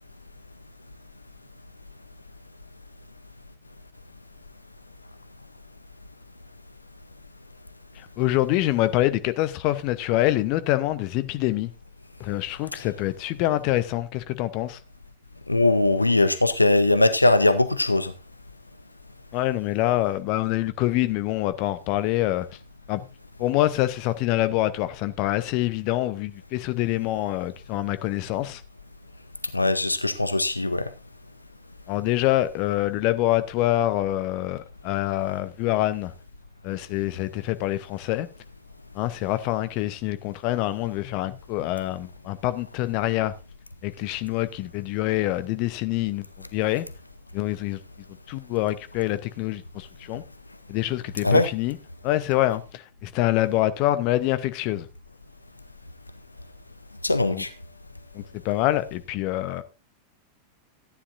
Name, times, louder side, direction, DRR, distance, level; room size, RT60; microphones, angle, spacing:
voice 1, 8.0-11.7 12.2-14.8 19.3-22.5 22.9-23.1 23.4-28.6 31.9-36.1 36.6-38.3 38.9-43.3 43.8-46.3 46.5-46.9 47.3-47.8 48.3-50.2 50.7-51.8 52.0-54.9 57.3-57.4 58.1-59.6, left 15 dB, 45° left, 0.8 m, -25 dB
voice 2, 15.5-18.1 29.5-30.9 51.2-51.5 57.0-57.5, left 2 dB, 85° left, 0.5 m, -20 dB
14.0 x 9.8 x 2.6 m
figure-of-eight pair, 90°, 0 cm